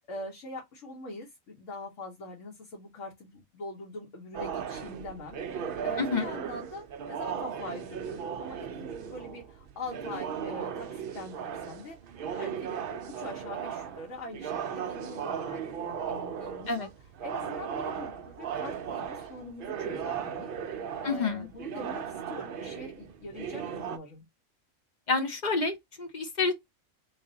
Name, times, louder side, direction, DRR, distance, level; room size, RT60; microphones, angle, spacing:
voice 1, 0.1-12.0 12.3-24.2, left 1 dB, 70° left, 1.3 m, -43 dB
sound 1, 4.3-24.0, right 7 dB, 60° right, 0.6 m, -37 dB
voice 2, 21.0-21.5 25.1-26.5, left 4 dB, 50° left, 0.5 m, -28 dB
3.3 x 2.4 x 3.8 m
omnidirectional pair, 1.4 m